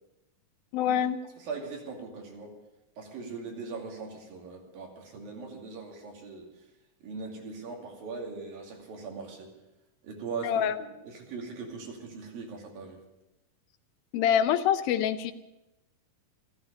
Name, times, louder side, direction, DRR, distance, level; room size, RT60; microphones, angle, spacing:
voice 1, 0.7-1.2 10.4-10.8 14.1-15.3, left 9 dB, 90° left, 10 dB, 2.7 m, -25 dB
voice 2, 1.4-2.5 3.0-6.5 7.0-9.5 10.0-13.0, right 4 dB, 80° right, 1 dB, 4.4 m, -40 dB
14.5 x 13.5 x 6.8 m, 0.94 s
omnidirectional pair, 4.1 m